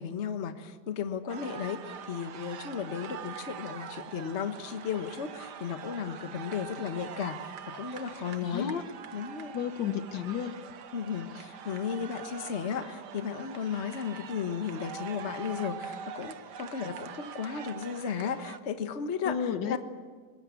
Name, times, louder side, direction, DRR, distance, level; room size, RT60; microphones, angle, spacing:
voice 1, 0.0-8.7 9.1-9.5 10.9-19.8, left 7 dB, 40° left, 9 dB, 1.3 m, -35 dB
sound 1, 1.3-18.6, right 8 dB, 65° right, 1.6 m, -44 dB
voice 2, 8.4-8.8 9.5-10.6 19.2-19.8, left 8 dB, 75° left, 10 dB, 1.8 m, -32 dB
23.0 x 21.0 x 8.4 m, 1.5 s
omnidirectional pair, 2.0 m